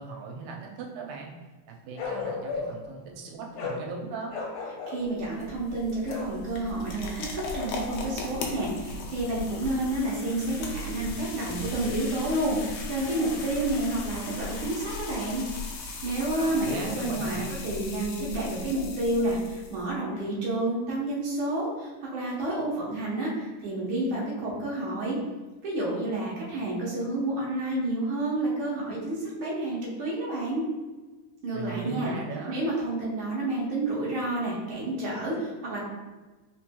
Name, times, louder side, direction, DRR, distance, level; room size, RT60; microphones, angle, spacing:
voice 1, 0.0-1.3 1.7-4.3 16.4-17.5 31.5-32.6, right 5 dB, 85° right, 1 dB, 2.2 m, -38 dB
Bark, 2.0-2.9 3.6-3.8 4.3-5.0 6.1-6.3, left 4 dB, 70° left, 1.8 m, -34 dB
voice 2, 4.9-15.4 16.0-25.2 25.6-30.6 31.4-32.1 32.5-35.8, right 1 dB, 60° right, -5 dB, 1.4 m, -30 dB
sound 1, 5.0-19.9, left 2 dB, 90° left, 1.3 m, -37 dB
4.5 x 4.0 x 2.2 m, 1.2 s
omnidirectional pair, 3.5 m